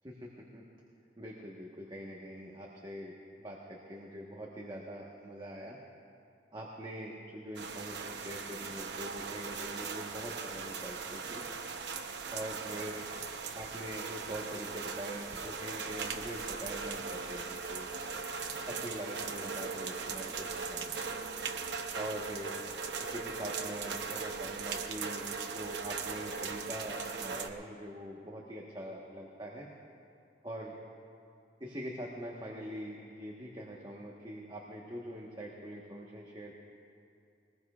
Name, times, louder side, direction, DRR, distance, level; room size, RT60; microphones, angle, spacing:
voice 1, 0.0-0.6 1.2-5.8 6.5-11.4 12.3-13.1 13.5-17.9 18.7-20.9 21.9-22.6 23.0-29.7 30.4-30.8 31.6-36.5, right 1 dB, 25° right, -3 dB, 1.2 m, -43 dB
sound 1, 7.6-27.5, right 5 dB, 70° right, 0.9 m, -39 dB
21.5 x 19.5 x 2.4 m, 2.5 s
head